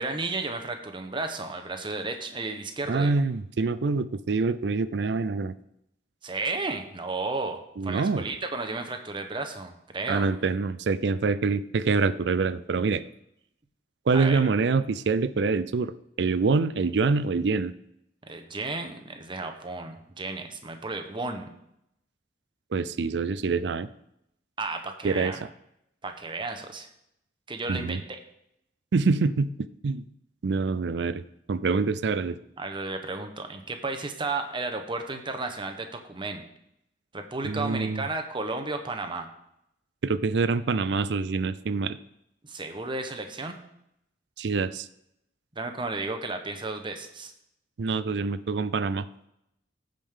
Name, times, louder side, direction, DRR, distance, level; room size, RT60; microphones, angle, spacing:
voice 1, 0.0-3.1 6.2-10.3 14.1-14.4 18.3-21.5 24.6-25.4 26.0-26.9 27.5-28.2 32.6-36.4 37.1-39.3 42.4-43.6 45.6-47.3, right 3 dB, 30° right, 5 dB, 1.0 m, -33 dB
voice 2, 2.9-5.5 7.8-8.2 10.1-13.0 14.1-15.9 16.2-17.7 22.7-23.9 25.0-25.3 27.7-28.0 28.9-29.5 29.8-30.0 30.4-31.2 31.5-32.4 37.4-38.0 40.0-42.0 44.4-44.9 47.8-49.1, right 4 dB, 70° right, 14 dB, 0.5 m, -25 dB
15.5 x 5.2 x 3.7 m, 0.79 s
head